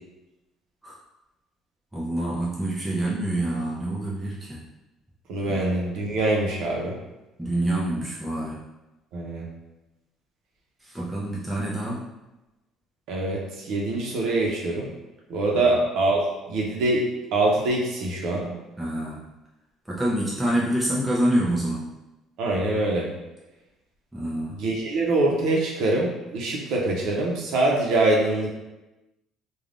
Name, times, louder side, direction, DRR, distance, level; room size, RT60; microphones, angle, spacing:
voice 1, 1.9-4.6 5.5-5.6 7.4-8.6 10.9-12.0 15.5-15.7 18.8-19.2 19.9-21.8 24.1-24.7, right 1 dB, 5° right, -7 dB, 0.5 m, -27 dB
voice 2, 5.3-6.9 9.1-9.5 13.1-14.9 15.3-16.2 16.5-17.0 17.3-18.5 22.4-23.1 24.6-28.5, right 2 dB, 70° right, -2 dB, 0.6 m, -24 dB
3.3 x 2.2 x 2.5 m, 1.0 s
cardioid pair, 145°, 0 cm